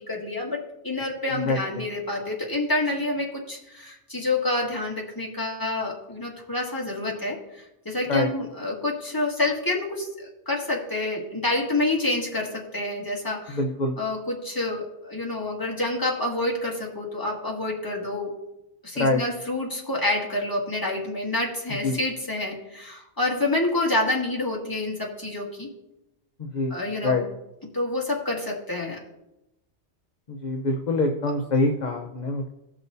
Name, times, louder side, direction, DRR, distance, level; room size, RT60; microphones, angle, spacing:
voice 1, 0.0-13.6 14.0-18.3 18.8-25.7 26.7-27.2 27.7-29.0, left 2 dB, 20° left, -2 dB, 1.9 m, -28 dB
voice 2, 1.5-1.8 8.1-8.3 13.5-13.9 19.0-19.2 21.8-22.0 26.4-26.7 27.0-27.2 30.3-32.5, left 2 dB, 40° left, 3 dB, 0.8 m, -25 dB
17.5 x 6.1 x 2.7 m, 0.89 s
omnidirectional pair, 1.2 m